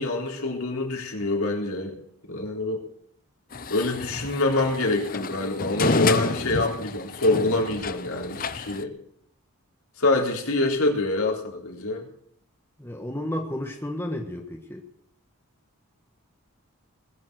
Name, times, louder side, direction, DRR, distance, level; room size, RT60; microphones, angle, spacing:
voice 1, 0.0-2.0 2.3-2.8 3.7-8.9 10.0-12.0, left 2 dB, 75° left, -1 dB, 3.8 m, -25 dB
sound 1, 3.5-8.8, left 3 dB, 40° left, 0.7 m, -29 dB
voice 2, 12.8-14.8, left 1 dB, 10° left, 2 dB, 1.5 m, -32 dB
20.5 x 7.4 x 7.8 m, 0.70 s
head